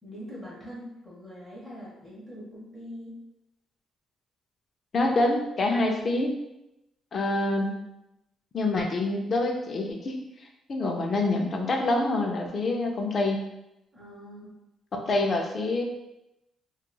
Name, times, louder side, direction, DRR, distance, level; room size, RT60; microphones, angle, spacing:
voice 1, 0.0-3.2 13.9-14.6, equal, 5° left, -7 dB, 1.0 m, -43 dB
voice 2, 4.9-6.4 7.1-7.8 8.5-10.2 10.7-13.4 14.9-15.8, left 2 dB, 45° left, 2 dB, 0.4 m, -26 dB
2.9 x 2.3 x 2.2 m, 0.90 s
cardioid pair, 90°, 0 cm